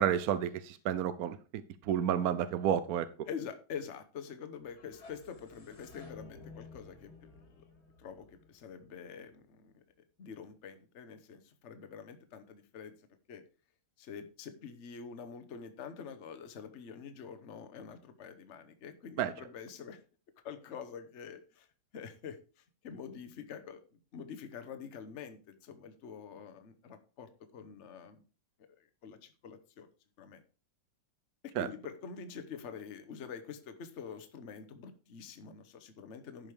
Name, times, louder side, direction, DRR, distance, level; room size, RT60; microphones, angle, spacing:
voice 1, 0.0-1.4 1.8-3.3 19.2-19.3 31.6-31.7, right 9 dB, 70° right, 13 dB, 1.0 m, -30 dB
voice 2, 3.2-7.4 8.0-9.8 10.2-13.0 13.3-13.4 14.0-20.0 20.4-21.7 21.9-28.2 28.8-29.9 30.2-30.4 31.4-36.5, left 6 dB, 45° left, 9 dB, 1.2 m, -46 dB
sound 1, 4.6-9.5, left 3 dB, 60° left, 2.9 m, -54 dB
11.5 x 5.2 x 4.8 m, 0.35 s
omnidirectional pair, 1.9 m